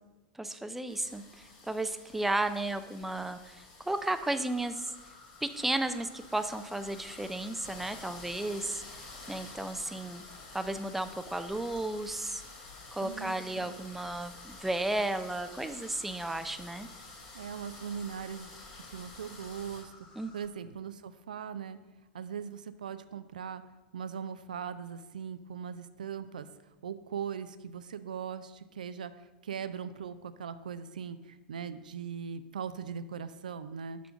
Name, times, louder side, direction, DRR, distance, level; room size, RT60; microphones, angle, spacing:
voice 1, 0.3-4.9 5.4-8.8 9.3-10.2 10.5-12.4 12.9-16.9 20.2-20.3, right 2 dB, 5° right, 10 dB, 0.4 m, -34 dB
sound 1, 0.9-19.8, left 3 dB, 55° left, 2.7 m, -50 dB
Insect, 3.9-20.5, left 4 dB, 40° left, 2.7 m, -57 dB
voice 2, 13.0-13.8 17.3-18.5 18.9-19.9 20.3-21.8 22.1-23.6 23.9-26.5 26.8-34.0, right 7 dB, 70° right, 12 dB, 0.4 m, -40 dB
6.1 x 5.7 x 6.1 m, 1.1 s
figure-of-eight pair, 85°, 5 cm